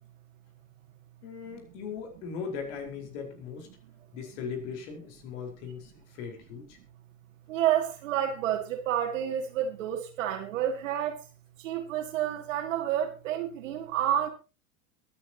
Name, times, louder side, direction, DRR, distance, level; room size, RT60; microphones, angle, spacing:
voice 1, 1.2-3.7 4.1-6.8, left 6 dB, 55° left, 4.8 m, -39 dB
voice 2, 7.5-11.2 11.6-14.3, right 10 dB, 65° right, 2.5 m, -29 dB
23.0 x 9.8 x 3.0 m
figure-of-eight pair, 80°, 42 cm